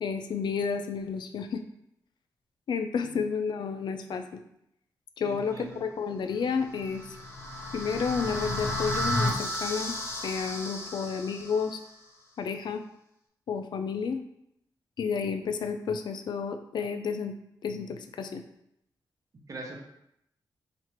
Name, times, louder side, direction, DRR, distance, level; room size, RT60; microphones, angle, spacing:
voice 1, 0.0-1.6 2.7-4.4 5.2-7.1 7.7-9.9 10.2-11.8 12.4-12.8 13.5-14.2 15.0-17.4 17.6-18.4, left 5 dB, 70° left, 7 dB, 0.3 m, -31 dB
voice 2, 5.2-5.8 19.5-19.8, right 2 dB, 45° right, 1 dB, 0.7 m, -41 dB
sound 1, 6.7-11.8, left 1 dB, 30° left, 0.6 m, -33 dB
4.2 x 2.5 x 3.0 m, 0.79 s
wide cardioid pair, 100°, 8 cm